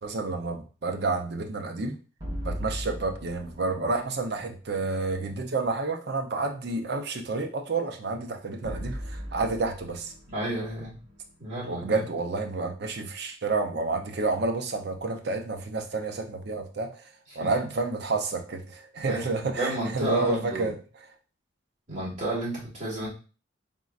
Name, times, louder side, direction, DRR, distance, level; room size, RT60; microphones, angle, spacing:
voice 1, 0.0-2.0 2.4-10.1 11.7-17.1 17.4-20.8, right 3 dB, 55° right, 4 dB, 0.6 m, -30 dB
sound 1, 2.2-4.4 8.6-11.9, equal, 25° right, 1.0 m, -38 dB
voice 2, 10.3-11.0 11.4-12.1 17.3-17.5 19.1-19.2 19.6-20.7 21.9-23.1, right 1 dB, 40° right, -7 dB, 2.3 m, -31 dB
4.1 x 3.8 x 2.4 m, 0.35 s
head